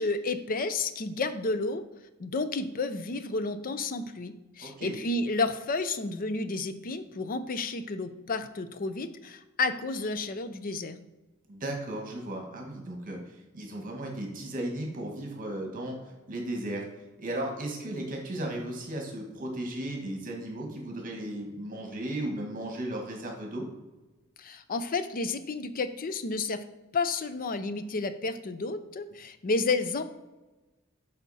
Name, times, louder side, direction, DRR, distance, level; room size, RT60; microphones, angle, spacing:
voice 1, 0.0-1.8 2.2-11.0 24.4-26.6 26.9-30.1, left 3 dB, 45° left, 11 dB, 0.5 m, -31 dB
voice 2, 4.6-5.0 11.5-16.9 17.2-23.6, right 1 dB, 40° right, 1 dB, 1.5 m, -35 dB
8.2 x 5.0 x 4.2 m, 1.1 s
head